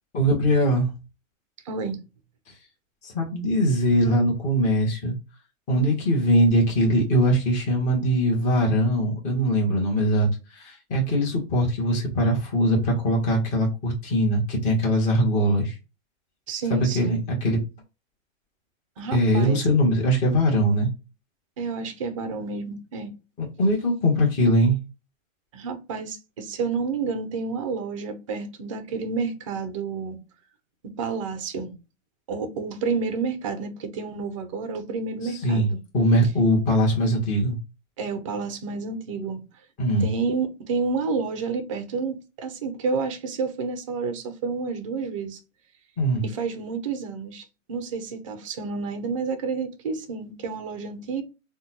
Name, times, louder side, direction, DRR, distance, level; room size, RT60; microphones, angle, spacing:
voice 1, 0.1-0.9 3.0-5.1 5.7-10.3 10.5-15.8 16.7-17.6 19.1-20.9 23.4-24.8 35.2-35.7 35.9-37.6 39.8-40.1 46.0-46.2, equal, 20° left, 1.0 m, -21 dB
voice 2, 1.7-2.0 16.5-17.2 19.0-19.7 21.6-23.1 25.5-30.2 30.8-31.8 32.3-35.8 38.0-39.4 40.0-45.4 46.2-51.2, right 4 dB, 25° right, 0.4 m, -30 dB
3.7 x 2.2 x 2.8 m
hypercardioid pair, 145°, 40 cm